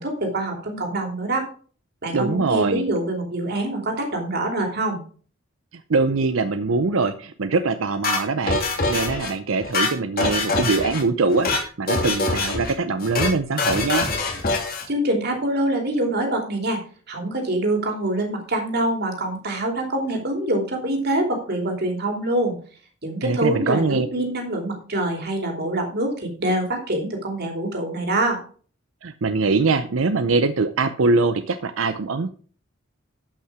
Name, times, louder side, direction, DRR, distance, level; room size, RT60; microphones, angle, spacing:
voice 1, 0.0-1.5 2.0-5.0 14.9-16.8 17.1-22.5 23.0-28.4, right 1 dB, 55° right, 3 dB, 3.0 m, -25 dB
voice 2, 2.1-2.9 5.9-14.1 23.2-24.1 29.0-32.3, right 3 dB, 90° right, 10 dB, 0.6 m, -22 dB
sound 1, 8.0-9.3 9.6-11.0 11.3-11.6 11.9-12.7 13.0-13.3 13.6-14.9, left 3 dB, 50° left, 2.8 m, -24 dB
12.5 x 5.8 x 4.8 m, 0.43 s
head